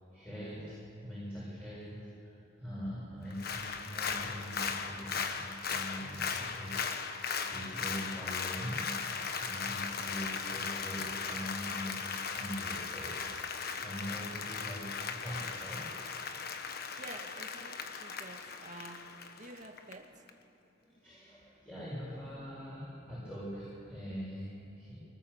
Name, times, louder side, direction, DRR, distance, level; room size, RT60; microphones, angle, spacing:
voice 1, 0.0-2.3 2.6-16.3 20.8-25.0, equal, 10° left, -9 dB, 7.4 m, -43 dB
Applause, 3.3-19.9 20.3-20.4, left 5 dB, 50° left, 1.3 m, -38 dB
voice 2, 17.0-19.1 19.4-20.2, right 2 dB, 40° right, 3 dB, 2.1 m, -49 dB
24.0 x 20.0 x 7.4 m, 2.9 s
head